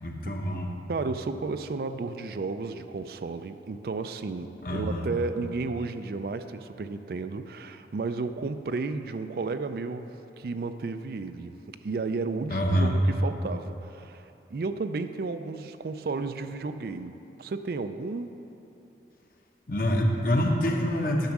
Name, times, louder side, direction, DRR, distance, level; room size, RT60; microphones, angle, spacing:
voice 1, 0.0-0.7 4.6-5.1 12.5-12.9 19.7-21.3, equal, 50° left, 1 dB, 1.0 m, -26 dB
voice 2, 0.9-18.3, right 3 dB, 55° right, 10 dB, 0.4 m, -33 dB
10.5 x 6.3 x 6.0 m, 2.9 s
head